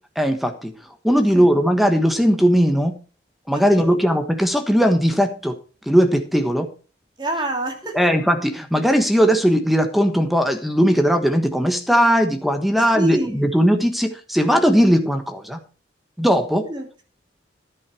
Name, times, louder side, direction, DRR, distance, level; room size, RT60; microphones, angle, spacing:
voice 1, 0.1-0.7 1.0-3.0 3.5-5.6 5.9-6.7 7.9-15.6 16.2-16.6, equal, ahead, 7 dB, 1.3 m, -18 dB
voice 2, 3.5-4.0 7.2-8.1 12.9-13.5 16.7-17.0, right 1 dB, 25° right, 3 dB, 2.5 m, -27 dB
11.5 x 9.8 x 4.4 m, 0.35 s
head